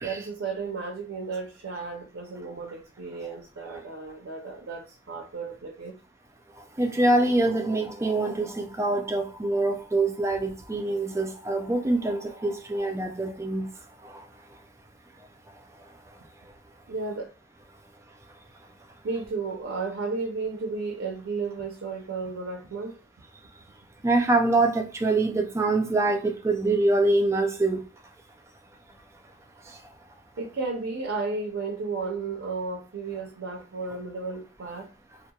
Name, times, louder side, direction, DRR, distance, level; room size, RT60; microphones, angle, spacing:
voice 1, 0.0-5.9 16.9-17.3 19.0-23.0 30.4-34.9, right 4 dB, 70° right, 0.5 m, -33 dB
voice 2, 6.6-13.7 14.0-14.3 24.0-27.8 29.6-29.8, right 2 dB, 15° right, 0.3 m, -25 dB
2.8 x 2.1 x 2.3 m
head